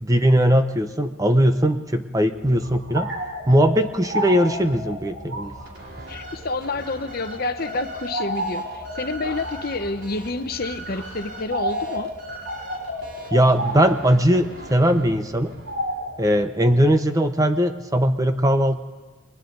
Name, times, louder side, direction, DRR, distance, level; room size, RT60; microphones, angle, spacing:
voice 1, 0.0-3.1 3.5-5.6 13.3-15.5 16.2-18.8, equal, 15° right, 8 dB, 0.9 m, -19 dB
sound 1, 2.3-16.7, equal, 75° right, 6.5 m, -33 dB
sound 2, 5.4-16.0, right 1 dB, 55° right, 5.1 m, -42 dB
voice 2, 6.1-12.1, left 3 dB, 50° left, 9 dB, 1.0 m, -29 dB
29.5 x 23.0 x 3.9 m, 1.3 s
head